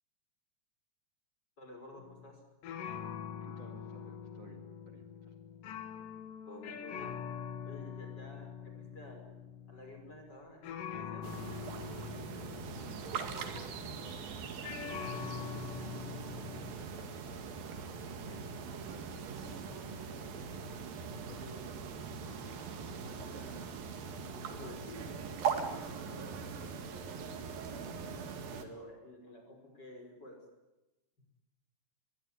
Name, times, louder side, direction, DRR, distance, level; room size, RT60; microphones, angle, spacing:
voice 1, 1.6-2.4 6.5-7.2 7.6-9.4 9.7-11.5 23.0-23.5 24.4-25.1 28.6-30.4, left 1 dB, 30° left, 3 dB, 6.1 m, -51 dB
sound 1, 2.0-2.3 2.6-14.2 14.6-16.7, left 8 dB, 70° left, 3.2 m, -44 dB
voice 2, 3.4-5.3 12.9-22.1 23.1-23.8 26.1-26.6, right 4 dB, 50° right, 3 dB, 3.1 m, -56 dB
sound 2, 11.2-28.6, right 6 dB, 75° right, 3.9 m, -41 dB
23.5 x 22.5 x 9.9 m, 1.0 s
omnidirectional pair, 4.1 m